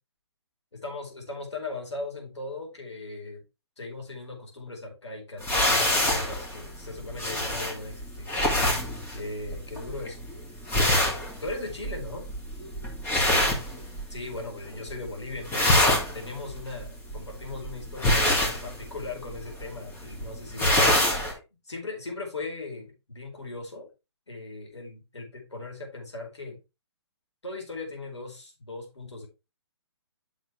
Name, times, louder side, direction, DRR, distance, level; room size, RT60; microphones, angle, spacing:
voice 1, 0.7-3.4 3.8-8.3 9.1-10.2 10.7-12.3 14.1-15.8 16.1-20.7 21.3-23.9 24.3-26.6 27.4-29.3, left 2 dB, 85° left, 0 dB, 4.6 m, -38 dB
sound 1, 5.4-14.4 14.7-15.1 15.3-21.3, left 1 dB, 15° left, 2.5 m, -26 dB
9.2 x 6.4 x 3.3 m, 0.27 s
figure-of-eight pair, 135°, 14 cm